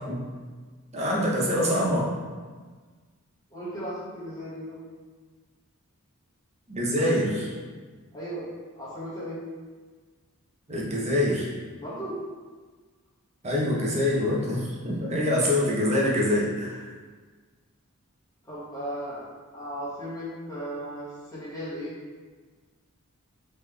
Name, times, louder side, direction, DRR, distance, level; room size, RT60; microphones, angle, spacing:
voice 1, 0.9-2.1 6.7-7.5 10.7-11.5 13.4-16.9, left 1 dB, 30° right, -4 dB, 0.9 m, -25 dB
voice 2, 3.5-4.7 8.1-8.5 8.8-9.4 11.8-12.2 18.5-19.2 19.5-21.9, equal, 15° left, -10 dB, 1.3 m, -36 dB
4.1 x 3.2 x 3.3 m, 1.4 s
head